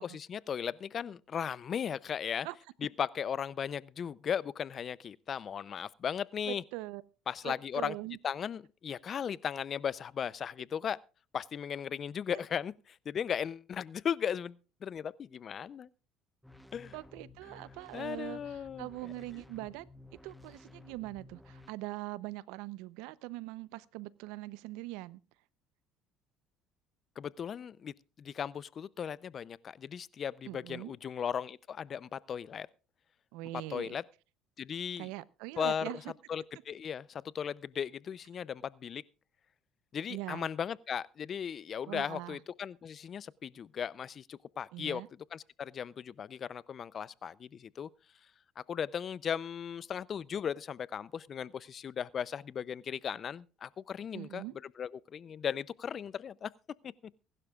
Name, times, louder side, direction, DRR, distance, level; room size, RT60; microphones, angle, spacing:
voice 1, 0.0-2.5 2.8-6.6 7.3-7.9 8.2-11.0 11.3-15.9 16.7-17.0 17.5-17.6 17.9-19.1 27.2-32.7 33.5-34.0 34.6-35.1 35.6-35.9 36.3-39.0 39.9-47.9 48.6-54.4 54.8-56.5 56.8-57.1, left 8 dB, 45° left, 0.5 m, -37 dB
voice 2, 6.5-7.0 7.4-8.2 16.9-19.9 20.2-25.2 30.5-30.9 33.3-34.0 35.0-36.0 40.1-40.5 41.9-42.4 44.7-45.1 54.1-54.5, right 18 dB, 80° right, 0.7 m, -42 dB
sound 1, 16.4-21.7, left 2 dB, ahead, 1.1 m, -54 dB
23.5 x 12.0 x 2.4 m
supercardioid pair, 95°, 0 cm